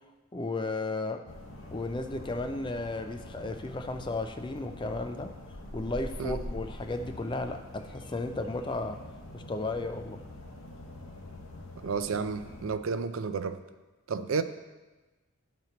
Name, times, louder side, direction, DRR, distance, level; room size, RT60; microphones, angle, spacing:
voice 1, 0.3-1.2 1.7-5.4 5.7-9.0 9.3-10.2, left 2 dB, 20° left, 7 dB, 0.4 m, -34 dB
sound 1, 1.3-12.8, left 1 dB, 65° left, 0.9 m, -44 dB
voice 2, 11.8-13.6 14.1-14.4, right 5 dB, 70° right, 11 dB, 0.4 m, -31 dB
12.5 x 4.3 x 4.0 m, 1.2 s
head